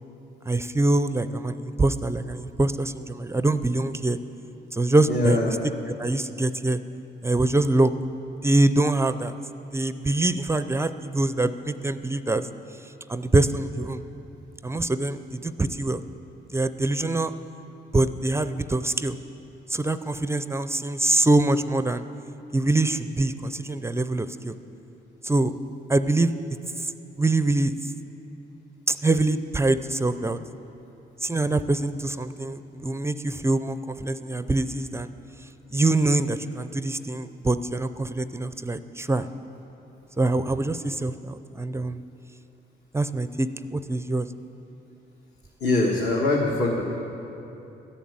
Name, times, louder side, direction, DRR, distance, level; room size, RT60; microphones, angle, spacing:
voice 1, 0.5-4.2 4.7-5.6 6.0-6.8 7.2-7.9 8.4-9.3 9.7-12.5 13.1-14.0 14.6-16.0 16.5-17.3 17.9-19.2 19.7-22.0 22.5-24.5 25.2-25.5 25.9-26.3 26.8-26.9 27.2-27.7 28.9-30.4 31.2-35.1 35.7-39.3 40.2-42.0 42.9-44.3, right 2 dB, 15° right, 12 dB, 0.4 m, -24 dB
voice 2, 5.1-5.5 45.6-46.8, left 2 dB, 60° left, -3 dB, 1.6 m, -23 dB
13.5 x 7.4 x 8.7 m, 2.9 s
cardioid pair, 90°, 20 cm